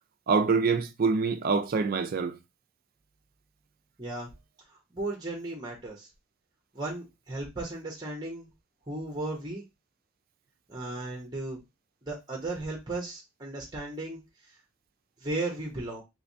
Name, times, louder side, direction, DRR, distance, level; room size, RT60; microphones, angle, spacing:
voice 1, 0.3-2.4, right 4 dB, 45° right, 0.4 m, -25 dB
voice 2, 4.9-6.1 6.7-8.5 8.9-9.6 10.7-11.6 12.0-14.2 15.2-16.0, right 2 dB, 20° right, 0.8 m, -35 dB
3.2 x 3.1 x 2.6 m
head